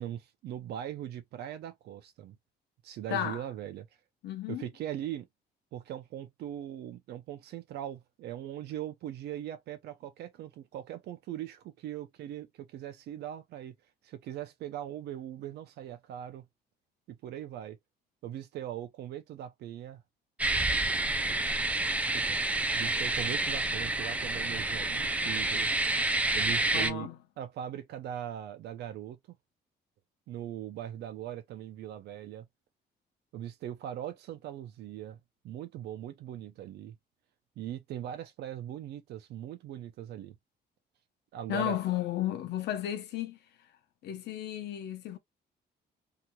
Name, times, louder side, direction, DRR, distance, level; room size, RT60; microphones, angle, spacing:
voice 1, 0.0-2.4 2.8-3.9 4.5-5.3 5.7-13.8 14.0-16.5 17.1-17.8 18.2-20.0 21.5-21.6 21.9-22.4 22.7-25.7 26.3-27.1 27.4-29.2 30.3-32.5 33.3-35.2 35.4-36.9 37.6-40.4 41.3-41.8, right 11 dB, 75° right, 0.5 m, -40 dB
voice 2, 3.1-3.4 4.2-4.7 26.7-27.2 41.5-43.4 44.0-45.2, left 12 dB, 80° left, 0.8 m, -33 dB
sound 1, 20.4-26.9, right 2 dB, 10° right, 0.3 m, -29 dB
3.0 x 2.9 x 2.2 m
cardioid pair, 155°, 17 cm